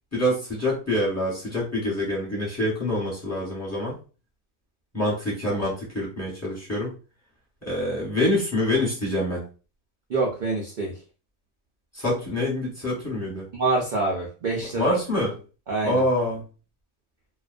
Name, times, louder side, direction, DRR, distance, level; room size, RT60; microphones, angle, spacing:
voice 1, 0.1-3.9 4.9-6.9 7.6-9.4 11.9-13.4 14.7-15.3 15.8-16.4, left 1 dB, 15° left, -5 dB, 1.0 m, -26 dB
voice 2, 10.1-11.0 13.5-15.0 15.7-16.0, right 3 dB, 70° right, -1 dB, 0.4 m, -26 dB
2.4 x 2.1 x 2.5 m, 0.35 s
omnidirectional pair, 1.4 m